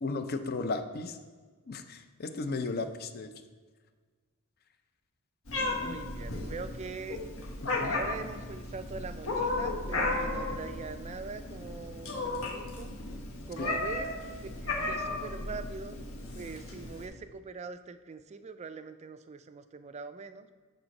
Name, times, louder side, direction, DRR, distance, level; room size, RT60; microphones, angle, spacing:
voice 1, 0.0-1.2 1.7-3.3 5.8-6.0 7.6-8.0 13.6-13.8, left 3 dB, 45° left, 8 dB, 0.5 m, -35 dB
Meow, 5.5-17.1, left 2 dB, 65° left, 1.3 m, -35 dB
voice 2, 5.7-7.2 7.8-12.9 13.5-14.2 14.4-16.1 16.3-20.5, right 4 dB, 30° right, 10 dB, 0.3 m, -42 dB
7.8 x 3.9 x 5.3 m, 1.5 s
head